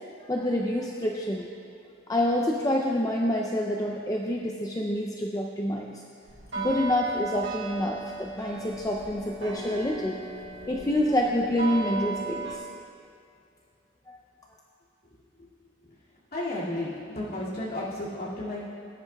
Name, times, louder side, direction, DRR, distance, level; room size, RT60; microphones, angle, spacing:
voice 1, 0.2-1.5 2.1-5.9 6.6-10.2 10.7-12.6 14.1-14.2, left 1 dB, 15° left, 0 dB, 0.4 m, -27 dB
sound 1, 6.3-12.6, right 4 dB, 80° right, 1.5 m, -36 dB
voice 2, 16.3-18.6, left 1 dB, 50° left, -9 dB, 2.3 m, -32 dB
18.0 x 10.0 x 2.3 m, 2.6 s
head